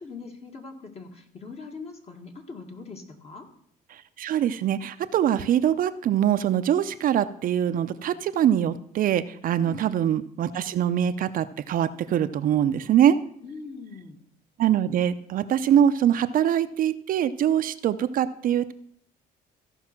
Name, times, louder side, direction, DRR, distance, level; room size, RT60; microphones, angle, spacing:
voice 1, 0.0-3.5 9.6-10.0 13.4-14.2, left 4 dB, 40° left, 3 dB, 2.0 m, -41 dB
voice 2, 3.9-13.2 14.6-18.7, right 10 dB, 55° right, 10 dB, 0.6 m, -23 dB
14.5 x 5.5 x 6.0 m, 0.66 s
cardioid pair, 110°, 17 cm